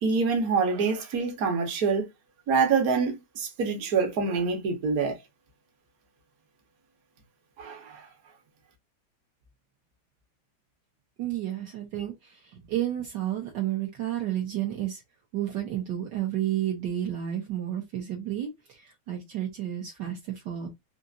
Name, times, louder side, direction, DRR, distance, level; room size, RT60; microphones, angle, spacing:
voice 1, 0.0-2.0 2.5-5.2 7.6-8.1, right 5 dB, 55° right, 1.3 m, -26 dB
voice 2, 11.2-15.0 15.3-20.7, right 11 dB, 70° right, 1.3 m, -31 dB
3.9 x 2.8 x 2.5 m
omnidirectional pair, 2.1 m